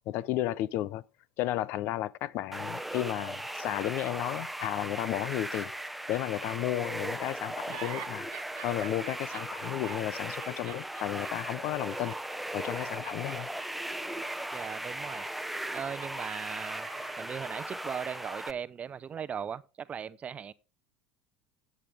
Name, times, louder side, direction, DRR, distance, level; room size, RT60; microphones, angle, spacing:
voice 1, 0.1-1.0 1.4-5.7 6.1-8.3 8.6-12.2 12.5-13.5, left 14 dB, 60° left, 0.6 m, -33 dB
sound 1, 2.5-18.5, right 1 dB, 5° right, 0.9 m, -38 dB
sound 2, 7.7-17.5, right 21 dB, 75° right, 0.5 m, -49 dB
voice 2, 14.5-15.2 15.7-16.9 17.1-20.5, right 7 dB, 35° right, 0.7 m, -38 dB
13.5 x 8.6 x 3.6 m
hypercardioid pair, 85°, 4 cm